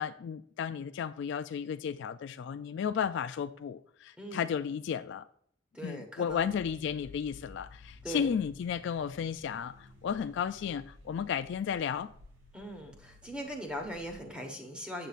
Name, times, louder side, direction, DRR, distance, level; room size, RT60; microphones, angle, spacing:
voice 1, 0.0-5.3 5.8-12.1, left 7 dB, 65° left, 0.3 m, -33 dB
voice 2, 5.7-6.5 8.0-8.3 12.5-15.1, equal, 5° right, 1.3 m, -40 dB
sound 1, 6.3-14.1, left 2 dB, 85° right, 1.8 m, -54 dB
9.0 x 6.8 x 2.5 m
head